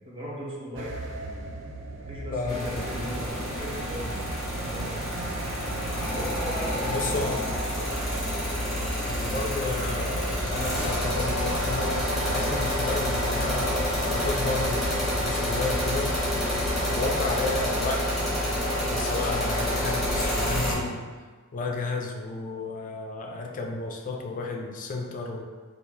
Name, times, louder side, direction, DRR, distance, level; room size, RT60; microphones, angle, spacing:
voice 1, 0.0-1.5 2.1-4.3 4.6-5.0 6.1-7.8, right 1 dB, 25° right, -5 dB, 0.7 m, -38 dB
sound 1, 0.8-17.9, right 2 dB, 55° right, 0.4 m, -38 dB
voice 2, 2.3-2.9 6.9-7.5 9.1-16.1 16.9-18.1 18.4-21.0 21.5-25.4, left 3 dB, 35° left, 1 dB, 0.3 m, -32 dB
sound 2, 2.5-20.7, equal, ahead, 1.0 m, -28 dB
3.5 x 2.4 x 3.0 m, 1.4 s
head